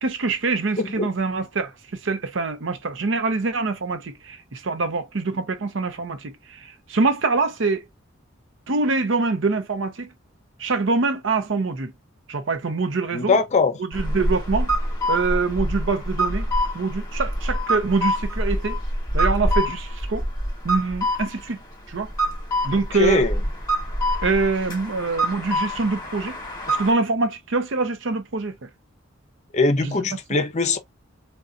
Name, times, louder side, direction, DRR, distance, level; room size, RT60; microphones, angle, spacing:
voice 1, 0.0-7.8 8.7-10.1 10.6-11.9 12.3-13.4 13.8-14.7 15.1-16.5 16.7-18.8 19.1-20.3 20.6-21.6 21.9-22.1 22.6-23.2 24.2-26.4 26.7-28.7 29.8-30.0, right 3 dB, 70° right, 0.6 m, -24 dB
voice 2, 0.8-1.1 13.1-13.7 23.0-23.3 29.5-30.8, left 3 dB, 35° left, 0.6 m, -21 dB
sound 1, 13.9-26.9, equal, 20° left, 1.1 m, -26 dB
3.8 x 2.2 x 2.4 m
head